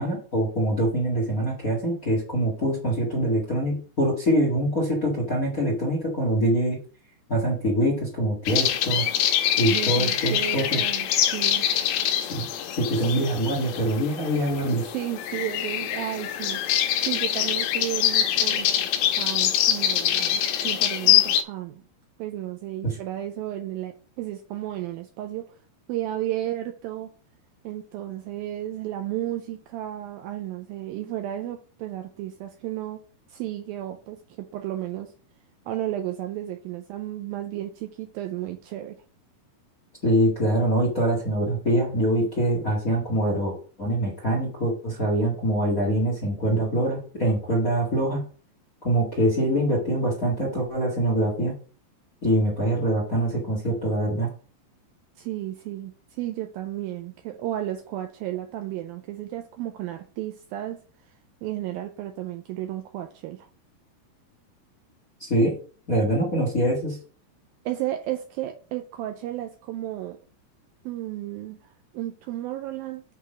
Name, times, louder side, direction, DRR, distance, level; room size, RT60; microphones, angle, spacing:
voice 1, 0.0-6.8 7.3-9.0 9.6-10.8 12.3-12.5 12.8-14.8 22.8-23.0 40.0-48.2 48.8-51.5 52.2-54.3 65.2-65.5 65.9-67.0, right 1 dB, 55° left, 0.9 m, -24 dB
sound 1, 8.5-21.4, left 11 dB, 80° left, 2.6 m, -24 dB
voice 2, 9.6-11.7 13.0-13.1 14.8-18.7 19.2-21.8 22.2-25.6 25.9-27.1 27.6-33.0 33.3-35.1 35.7-39.0 55.2-60.8 61.4-63.5 67.7-70.2 70.9-73.0, right 13 dB, 90° right, 2.0 m, -33 dB
8.2 x 3.9 x 5.0 m
omnidirectional pair, 4.8 m